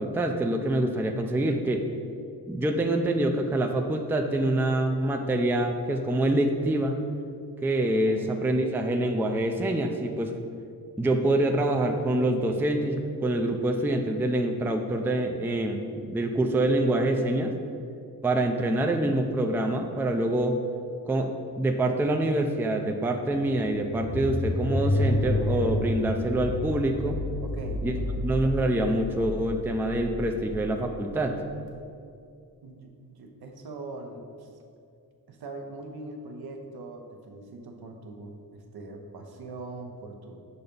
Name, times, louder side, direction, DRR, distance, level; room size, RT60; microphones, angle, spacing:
voice 1, 0.0-1.9 2.5-7.0 7.6-10.3 11.0-17.5 18.2-20.6 21.1-27.2 27.8-27.9 28.2-31.4, right 1 dB, 5° right, 4 dB, 0.4 m, -26 dB
sound 1, 23.2-31.5, left 1 dB, 75° left, 1.2 m, -30 dB
voice 2, 27.4-28.2 32.6-34.5 35.3-40.4, right 2 dB, 70° right, 3 dB, 0.9 m, -42 dB
5.7 x 4.1 x 5.1 m, 2.4 s
cardioid pair, 85°, 39 cm